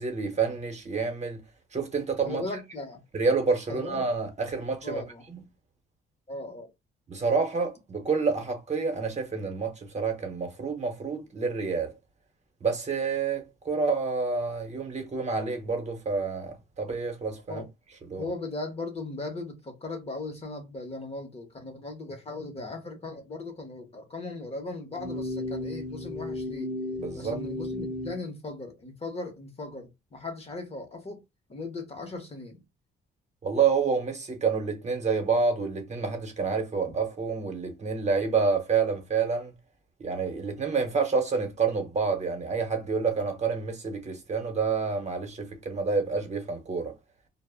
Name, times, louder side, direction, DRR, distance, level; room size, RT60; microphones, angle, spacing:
voice 1, 0.0-1.4 1.7-2.4 3.1-5.0 5.3-5.4 7.1-11.9 12.6-17.6 18.1-18.3 27.0-27.4 33.4-39.5 40.0-46.9, right 5 dB, 35° right, 0.8 m, -28 dB
voice 2, 2.2-3.0 3.7-4.0 4.8-5.2 6.3-6.7 17.5-17.7 18.2-26.7 27.1-31.2 31.5-32.6, left 2 dB, 30° left, 0.8 m, -38 dB
sound 1, 24.9-28.2, left 1 dB, 5° right, 0.7 m, -34 dB
2.1 x 2.0 x 3.4 m
cardioid pair, 90°, 20 cm